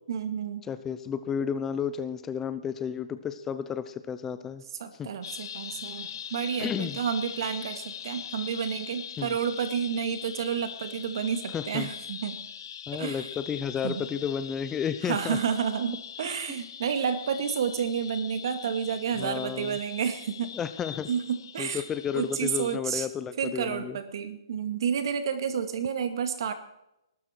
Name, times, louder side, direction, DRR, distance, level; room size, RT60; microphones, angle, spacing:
voice 1, 0.1-0.6 4.8-12.4 12.9-13.3 13.8-14.1 15.0-20.6 21.1-21.8 22.1-23.1 23.4-26.5, right 7 dB, 55° right, 9 dB, 2.1 m, -30 dB
voice 2, 0.7-4.6 5.0-5.1 6.6-7.0 9.2-9.4 11.5-11.9 12.9-15.4 19.2-19.8 20.5-21.1 21.6-24.0, left 7 dB, 10° left, 12 dB, 0.5 m, -32 dB
sound 1, 5.2-22.8, left 8 dB, 55° left, 1.0 m, -42 dB
20.5 x 12.5 x 4.5 m, 0.86 s
hypercardioid pair, 160°, 3 cm